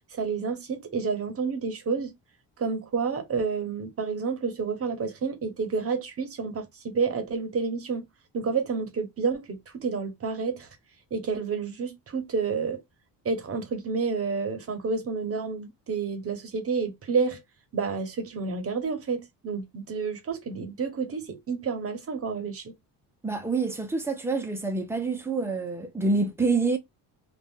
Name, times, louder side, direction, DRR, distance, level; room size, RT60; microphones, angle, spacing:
voice 1, 0.1-2.1 2.6-8.0 8.3-10.7 11.1-12.8 13.2-17.4 17.7-22.7, right 5 dB, 35° right, 1.0 m, -29 dB
voice 2, 23.2-26.8, right 3 dB, 5° right, 0.7 m, -27 dB
2.6 x 2.4 x 3.5 m
cardioid pair, 130°, 41 cm